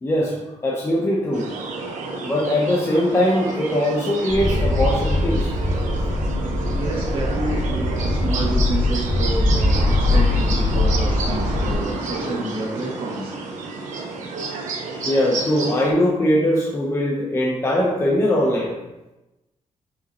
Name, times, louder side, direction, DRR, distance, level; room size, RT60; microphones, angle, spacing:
voice 1, 0.0-1.5 2.2-5.5 15.0-18.8, left 1 dB, 20° left, -3 dB, 0.8 m, -21 dB
sound 1, 1.3-15.9, right 3 dB, 85° right, 1.1 m, -30 dB
sound 2, 4.3-11.7, left 2 dB, ahead, 1.5 m, -21 dB
voice 2, 6.7-13.3, right 2 dB, 45° right, -4 dB, 2.0 m, -29 dB
7.3 x 5.0 x 2.9 m, 0.99 s
wide cardioid pair, 170°, 13 cm